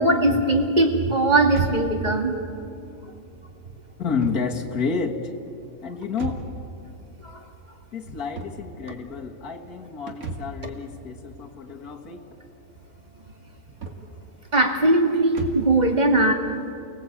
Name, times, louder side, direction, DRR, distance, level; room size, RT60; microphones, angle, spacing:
voice 1, 0.0-2.3 7.2-7.3 14.5-16.3, right 2 dB, 30° right, 2 dB, 2.3 m, -20 dB
sound 1, 1.5-15.8, right 3 dB, 65° right, 2.5 m, -39 dB
voice 2, 4.0-5.3 5.8-6.4 7.9-12.3, left 5 dB, 75° left, 1 dB, 2.2 m, -30 dB
29.0 x 18.0 x 8.6 m, 2.7 s
omnidirectional pair, 1.6 m